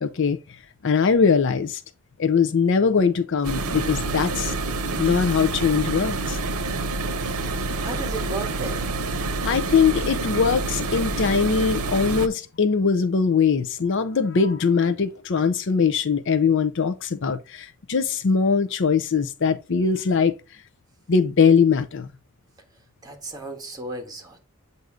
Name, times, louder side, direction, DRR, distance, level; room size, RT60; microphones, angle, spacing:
voice 1, 0.0-0.4 0.8-1.8 2.2-4.5 5.0-6.4 9.4-20.4 21.1-22.1, left 5 dB, 55° left, 0.5 m, -21 dB
sound 1, 3.4-12.3, right 3 dB, 80° right, 0.7 m, -27 dB
voice 2, 7.8-8.9 23.0-24.4, right 2 dB, 15° right, 1.4 m, -34 dB
8.0 x 2.7 x 4.9 m
head